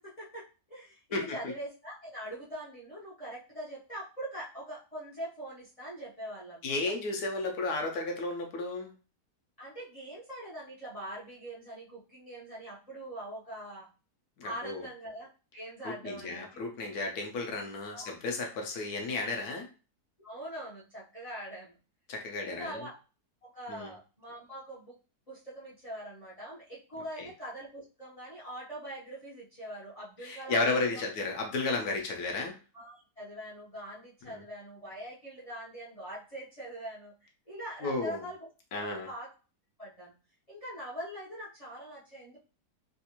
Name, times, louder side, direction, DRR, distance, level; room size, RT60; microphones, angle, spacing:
voice 1, 0.0-6.8 9.6-13.9 14.4-16.5 17.9-18.1 19.1-19.2 20.2-21.7 22.4-22.9 23.4-24.9 25.3-31.0 32.7-39.3 39.8-40.1 40.5-42.4, right 1 dB, 35° left, -7 dB, 0.6 m, -43 dB
voice 2, 6.6-8.9 14.4-14.8 15.8-19.7 22.1-22.8 23.7-23.9 27.2-27.3 30.2-32.5 34.3-34.4 37.8-38.2 38.7-39.1, left 3 dB, 70° left, 2 dB, 1.1 m, -33 dB
3.4 x 2.4 x 2.8 m, 0.35 s
omnidirectional pair, 1.8 m